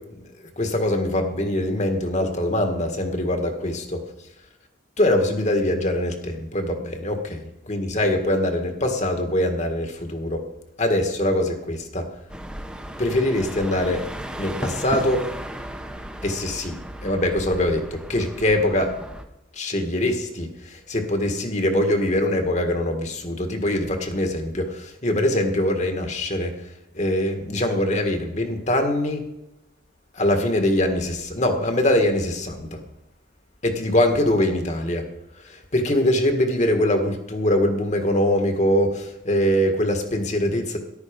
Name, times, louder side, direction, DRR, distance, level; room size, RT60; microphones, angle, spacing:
voice 1, 0.1-4.0 5.0-10.4 10.8-12.1 13.0-14.0 14.4-15.3 16.2-18.9 19.5-26.5 26.9-29.2 30.1-32.8 33.6-35.0 35.4-40.8, left 1 dB, 35° left, 5 dB, 1.8 m, -23 dB
sound 1, 12.3-19.2, right 1 dB, 5° right, 1.0 m, -35 dB
14.0 x 11.5 x 5.3 m, 0.87 s
head